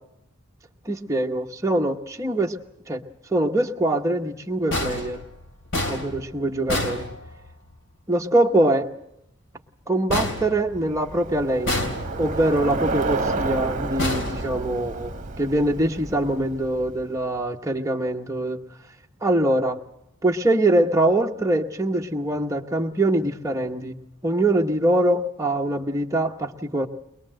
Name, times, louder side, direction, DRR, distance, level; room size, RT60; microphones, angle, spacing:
voice 1, 0.8-2.6 2.9-3.0 3.3-5.2 5.9-7.1 8.1-8.9 9.9-11.9 12.2-18.6 19.2-19.8 20.2-24.0 24.2-26.9, right 1 dB, 15° right, 2 dB, 1.0 m, -23 dB
sound 1, 4.7-7.8 10.1-11.2 11.7-12.5 14.0-15.1, left 1 dB, 65° left, 3.2 m, -29 dB
Bicycle, 10.7-17.2, right 3 dB, 40° right, 1.4 m, -30 dB
22.0 x 21.5 x 7.6 m, 0.79 s
head